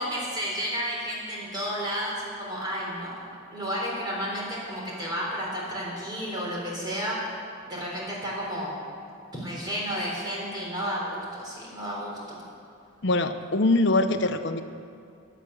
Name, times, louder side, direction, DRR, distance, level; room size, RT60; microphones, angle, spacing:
voice 1, 0.0-3.1 3.5-7.2 7.7-8.8 9.3-12.4, equal, 20° right, -5 dB, 3.9 m, -32 dB
voice 2, 13.0-14.6, left 2 dB, 55° left, 8 dB, 0.8 m, -23 dB
12.5 x 10.0 x 8.5 m, 2.4 s
head